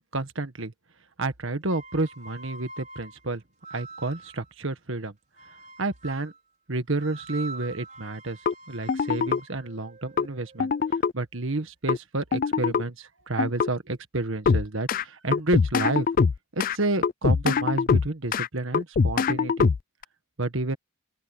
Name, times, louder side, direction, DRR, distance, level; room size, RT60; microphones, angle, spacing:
voice 1, 0.1-0.7 1.2-3.4 3.7-5.1 5.8-6.3 6.7-8.4 8.7-10.7 11.1-16.1 16.5-19.7 20.4-20.8, right 2 dB, 65° right, 1.6 m, -30 dB
sound 1, 1.6-4.5 5.4-6.4 7.0-11.0, right 3 dB, 35° right, 5.7 m, -45 dB
sound 2, 8.5-8.6 8.9-9.4 10.2-10.3 10.6-11.1 11.9-12.0 12.3-12.8 13.4-13.7 14.5-15.0 15.3-16.8 17.0-18.5 18.7-20.0, left 5 dB, 40° left, 0.3 m, -23 dB
open air
head